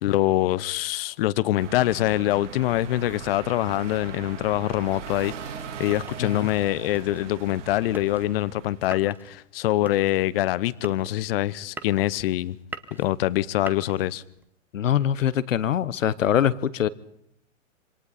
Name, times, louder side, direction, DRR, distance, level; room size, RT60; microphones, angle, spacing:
voice 1, 0.0-5.3 5.8-12.6 13.0-14.2, left 15 dB, 50° left, 0.8 m, -24 dB
sound 1, 1.6-8.8, right 7 dB, 70° right, 3.4 m, -40 dB
sound 2, 6.0-14.5, right 3 dB, 5° right, 0.8 m, -44 dB
voice 2, 14.7-16.9, left 9 dB, 75° left, 1.0 m, -23 dB
27.0 x 24.5 x 4.1 m
hypercardioid pair, 120°, 38 cm